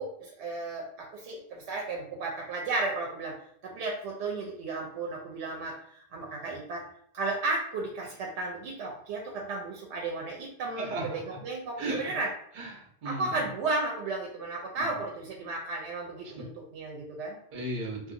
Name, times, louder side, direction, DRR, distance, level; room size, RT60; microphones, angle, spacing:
voice 1, 0.0-3.3 3.6-6.8 7.1-12.3 13.0-17.4, right 3 dB, 85° right, -1 dB, 0.9 m, -34 dB
voice 2, 10.8-11.2 11.8-12.0 12.5-13.4 14.8-14.9 16.2-16.4 17.5-18.1, right 2 dB, 50° right, -1 dB, 0.8 m, -35 dB
2.8 x 2.6 x 2.5 m, 0.66 s
omnidirectional pair, 1.1 m